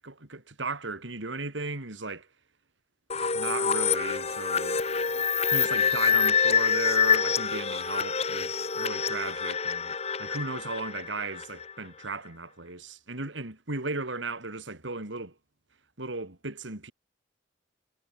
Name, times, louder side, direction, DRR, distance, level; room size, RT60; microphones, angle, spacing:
voice 1, 0.0-2.3 3.1-4.8 5.5-9.9 10.2-15.4 16.0-16.9, right 3 dB, 90° right, 3.5 m, -36 dB
sound 1, 3.1-11.7, left 6 dB, 35° left, 2.0 m, -26 dB
head